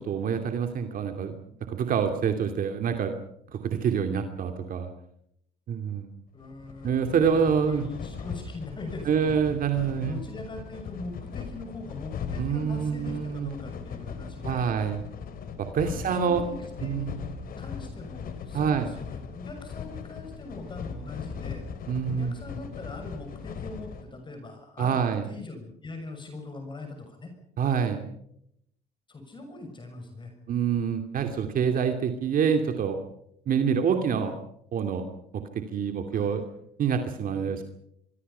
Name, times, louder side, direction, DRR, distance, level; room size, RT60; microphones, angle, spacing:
voice 1, 0.0-1.3 1.7-3.1 3.5-4.9 5.7-6.1 6.8-7.8 9.1-10.2 12.4-13.5 14.4-15.0 15.6-16.4 16.8-17.2 18.5-18.9 21.9-22.3 24.8-25.2 27.6-28.0 30.5-33.0 33.5-34.3 34.7-35.0 35.3-35.4 35.7-36.4 36.8-37.6, right 7 dB, 55° right, 6 dB, 2.6 m, -26 dB
voice 2, 6.3-9.3 9.7-14.8 15.8-17.1 17.6-21.6 22.1-27.3 29.1-30.3 36.1-36.4 37.2-37.6, left 2 dB, 30° left, 5 dB, 6.6 m, -42 dB
sound 1, 6.4-24.0, left 6 dB, 60° left, 3.8 m, -39 dB
26.5 x 24.0 x 5.7 m, 0.74 s
cardioid pair, 110°, 17 cm